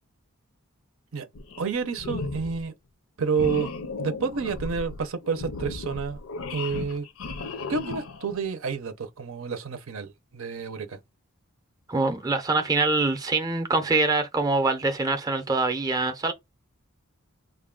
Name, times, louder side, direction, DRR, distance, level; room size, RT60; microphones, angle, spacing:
sound 1, 1.3-1.7 2.0-2.6 3.3-8.3, left 3 dB, 70° left, 0.6 m, -35 dB
voice 1, 1.6-2.7 3.2-3.7 4.0-6.2 6.5-7.1 7.7-11.0, right 5 dB, 70° right, 0.6 m, -29 dB
voice 2, 11.9-16.3, right 3 dB, 20° right, 0.6 m, -24 dB
3.7 x 2.3 x 3.7 m
head